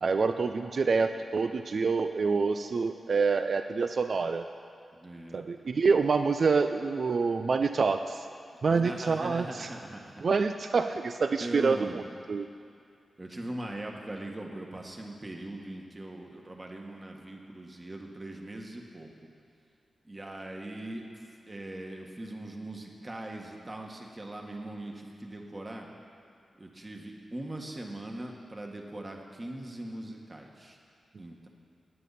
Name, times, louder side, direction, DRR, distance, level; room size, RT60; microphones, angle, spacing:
voice 1, 0.0-4.4 5.3-8.3 8.6-9.7 10.2-12.0 12.3-12.5, right 4 dB, 65° right, 8 dB, 0.4 m, -27 dB
voice 2, 4.9-5.4 8.7-10.2 11.4-12.0 13.2-19.1 20.0-25.9 26.6-30.8 31.2-31.5, right 1 dB, 30° right, 1 dB, 1.7 m, -40 dB
17.0 x 9.2 x 4.2 m, 2.4 s
cardioid pair, 50°, 0 cm